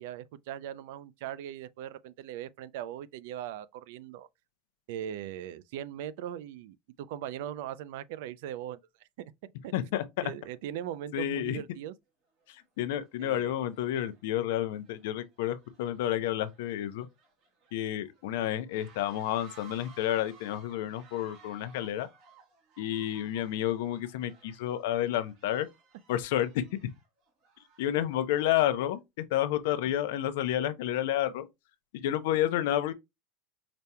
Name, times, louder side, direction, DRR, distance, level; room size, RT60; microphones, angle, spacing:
voice 1, 0.0-4.3 4.9-9.3 9.6-9.7 10.2-11.9 13.2-13.5, right 11 dB, 70° right, 0.4 m, -40 dB
voice 2, 9.7-10.0 11.1-11.6 12.5-17.1 17.7-22.1 22.8-25.7 26.1-26.9 27.8-31.5 31.9-32.9, left 12 dB, 75° left, 0.6 m, -30 dB
sound 1, 12.4-12.6 13.0-29.0, right 5 dB, 40° right, 1.3 m, -59 dB
5.1 x 2.8 x 2.2 m
supercardioid pair, 170°, 0 cm